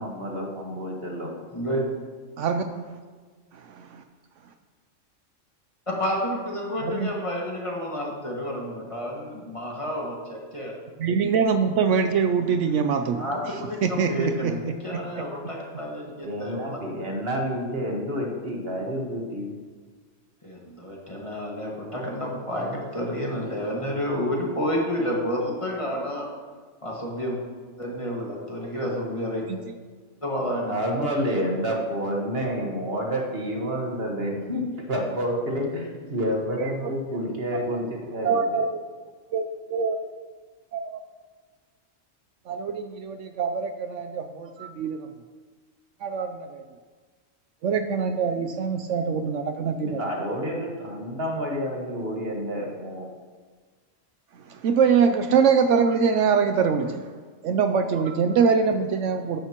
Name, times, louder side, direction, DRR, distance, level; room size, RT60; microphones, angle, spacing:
voice 1, 0.0-1.3 16.2-19.5 30.7-34.6 34.9-38.4 49.8-53.1, equal, 50° right, 0 dB, 1.7 m, -29 dB
voice 2, 2.4-2.9 3.5-4.0 6.8-7.1 11.0-13.3 13.8-14.7 29.5-29.6 36.6-37.2 37.5-37.8 38.2-38.8 39.3-39.4 39.7-40.0 40.7-41.0 42.5-45.1 46.0-46.6 47.6-50.0 54.5-57.1 57.4-59.4, right 6 dB, 75° right, 8 dB, 0.9 m, -24 dB
voice 3, 5.9-10.8 13.2-16.8 20.4-26.3 26.8-27.4 27.8-29.4 30.2-30.7, equal, 25° left, -3 dB, 1.8 m, -30 dB
12.5 x 9.9 x 3.0 m, 1.5 s
omnidirectional pair, 1.3 m